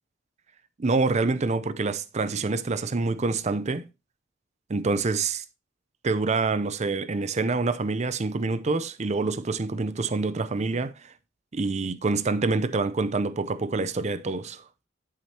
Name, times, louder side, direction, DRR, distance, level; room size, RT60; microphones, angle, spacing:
voice 1, 0.8-3.8 4.7-5.4 6.0-11.1 11.5-14.6, right 3 dB, 35° right, 0.5 m, -26 dB
10.5 x 5.0 x 2.8 m
head